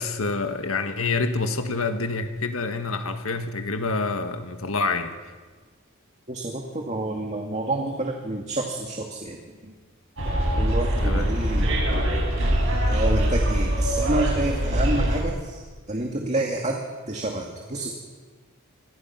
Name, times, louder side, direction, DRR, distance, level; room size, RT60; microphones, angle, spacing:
voice 1, 0.0-5.1 11.0-11.3, left 3 dB, 70° left, 7 dB, 1.6 m, -27 dB
voice 2, 6.3-9.7 10.6-11.7 12.9-17.9, right 2 dB, 30° right, 1 dB, 2.2 m, -29 dB
Bus, 10.2-15.2, equal, 60° right, 7.3 m, -23 dB
27.5 x 23.5 x 5.9 m, 1.4 s
head